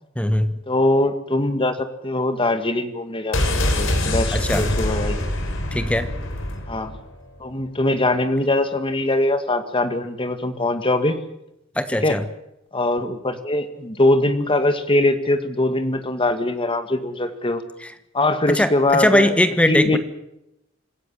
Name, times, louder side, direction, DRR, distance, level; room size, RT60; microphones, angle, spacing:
voice 1, 0.2-0.6 4.3-4.7 5.7-6.1 11.8-12.2 18.5-20.0, left 1 dB, 5° left, 10 dB, 1.2 m, -20 dB
voice 2, 0.7-5.2 6.7-7.0 7.4-11.2 12.0-12.2 12.7-17.6 18.1-19.3 19.7-20.0, left 2 dB, 25° left, 9 dB, 2.0 m, -22 dB
sound 1, 3.3-7.1 7.4-7.5, left 1 dB, 75° left, 4.4 m, -24 dB
26.5 x 15.5 x 7.6 m, 0.84 s
head